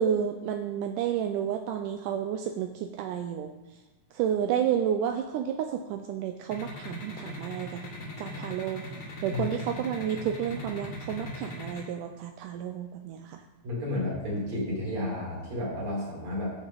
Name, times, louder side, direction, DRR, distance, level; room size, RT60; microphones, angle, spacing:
voice 1, 0.0-3.5 4.1-7.8 8.2-8.8 9.2-13.4, right 9 dB, 90° right, 6 dB, 1.8 m, -31 dB
sound 1, 6.5-11.8, left 2 dB, 45° left, 2.5 m, -39 dB
voice 2, 13.6-16.5, left 1 dB, 45° right, -5 dB, 4.2 m, -32 dB
13.5 x 7.1 x 3.9 m, 1.1 s
omnidirectional pair, 4.2 m